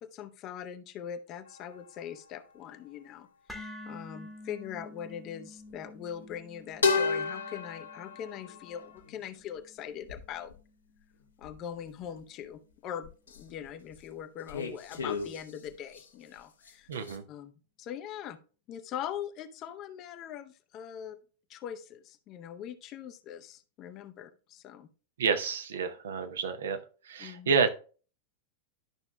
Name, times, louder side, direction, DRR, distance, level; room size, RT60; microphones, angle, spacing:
voice 1, 0.0-10.5 11.4-16.9 17.3-17.5 17.8-18.4 18.7-21.2 21.5-24.9 27.2-27.5, left 9 dB, 35° left, 10 dB, 0.7 m, -42 dB
sound 1, 1.4-2.5 5.7-6.0 6.8-9.3 10.0-10.5 11.4-12.5 13.0-14.0 14.5-16.1 16.4-17.2, left 4 dB, 70° left, 1.1 m, -34 dB
sound 2, 3.5-11.6, left 1 dB, ahead, 1.1 m, -50 dB
voice 2, 16.9-17.2 25.2-26.8 27.0-27.7, right 5 dB, 65° right, 8 dB, 0.8 m, -29 dB
11.5 x 5.9 x 2.2 m, 0.37 s
figure-of-eight pair, 90°, 0 cm